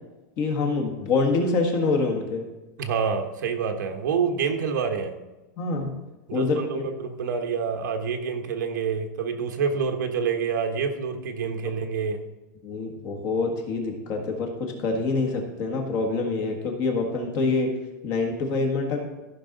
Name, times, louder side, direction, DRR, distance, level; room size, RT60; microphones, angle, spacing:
voice 1, 0.4-2.4 5.6-5.9 6.3-6.9 12.6-17.7 18.0-19.1, left 3 dB, 30° left, 2 dB, 1.6 m, -26 dB
voice 2, 2.8-5.1 6.3-12.2, right 6 dB, 80° right, 5 dB, 1.3 m, -27 dB
14.5 x 5.7 x 3.9 m, 1.1 s
supercardioid pair, 170°, 10 cm